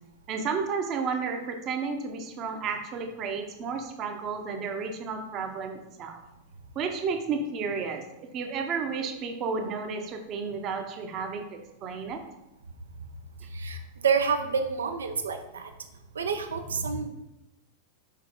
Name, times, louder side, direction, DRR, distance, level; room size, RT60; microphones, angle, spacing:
voice 1, 0.3-6.2 6.7-8.1 8.3-12.2, right 5 dB, 35° right, 5 dB, 0.9 m, -32 dB
voice 2, 14.0-15.7 16.1-17.1, right 6 dB, 70° right, 7 dB, 0.7 m, -28 dB
6.6 x 4.7 x 3.7 m, 0.92 s
figure-of-eight pair, 90°, 0 cm